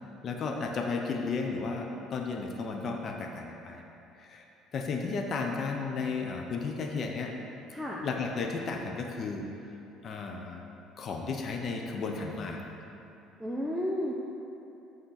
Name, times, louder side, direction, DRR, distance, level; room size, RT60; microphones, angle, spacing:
voice 1, 0.2-3.8 4.2-4.5 4.7-7.3 8.0-9.5 10.0-10.7 11.0-12.6, left 4 dB, 45° left, 2 dB, 0.7 m, -33 dB
voice 2, 7.7-8.1 13.4-14.1, left 1 dB, ahead, -4 dB, 0.6 m, -32 dB
7.9 x 3.8 x 5.7 m, 2.9 s
cardioid pair, 110°, 0 cm